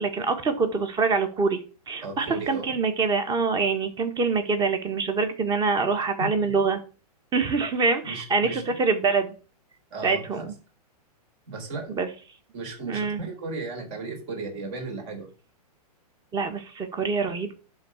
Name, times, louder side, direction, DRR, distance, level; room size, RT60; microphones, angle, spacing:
voice 1, 0.0-1.6 1.9-6.8 7.3-9.3 10.0-10.5 11.9-12.1 12.8-13.2 16.3-17.5, right 4 dB, 20° right, 7 dB, 1.6 m, -25 dB
voice 2, 2.0-2.7 6.2-6.5 8.0-8.7 9.9-10.5 11.5-12.0 12.5-15.3, right 3 dB, 45° right, 3 dB, 4.3 m, -35 dB
11.0 x 4.0 x 7.3 m, 0.36 s
hypercardioid pair, 130°, 20 cm